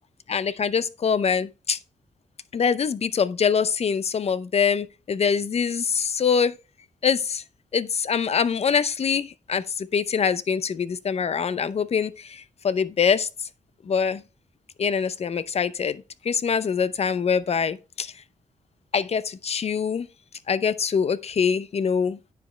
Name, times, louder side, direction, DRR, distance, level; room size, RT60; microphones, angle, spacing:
voice 1, 0.3-1.8 2.5-6.6 7.0-7.4 7.7-13.3 13.9-14.2 14.8-16.0 16.2-18.1 18.9-20.1 20.5-22.2, left 6 dB, 50° left, 0.6 m, -24 dB
9.5 x 5.1 x 3.2 m
cardioid pair, 70°, 14 cm